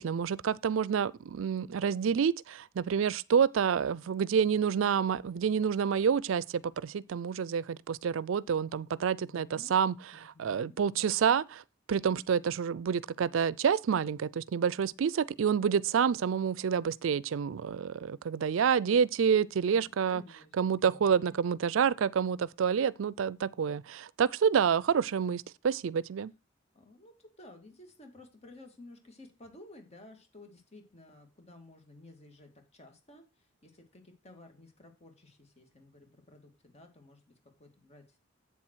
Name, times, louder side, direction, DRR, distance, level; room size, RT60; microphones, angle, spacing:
voice 1, 0.0-9.9 10.4-11.6 11.9-20.2 20.6-26.3, right 7 dB, 85° right, 0.4 m, -28 dB
voice 2, 8.9-9.8 10.1-10.8 19.7-20.5 20.8-21.1 26.7-38.2, left 2 dB, 35° left, 2.2 m, -54 dB
8.3 x 7.4 x 4.6 m
head